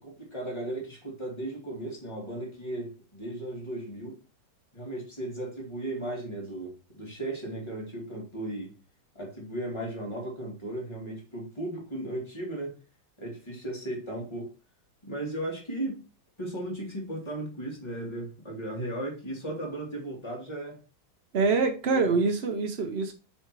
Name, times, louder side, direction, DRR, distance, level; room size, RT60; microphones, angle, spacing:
voice 1, 0.0-4.2 4.7-8.7 9.1-12.7 13.2-14.5 15.0-16.0 16.4-20.8 21.9-22.2, right 1 dB, 15° left, 2.5 m, -36 dB
voice 2, 21.3-23.1, right 4 dB, 80° right, 0.5 m, -25 dB
6.6 x 4.4 x 4.6 m
omnidirectional pair, 2.2 m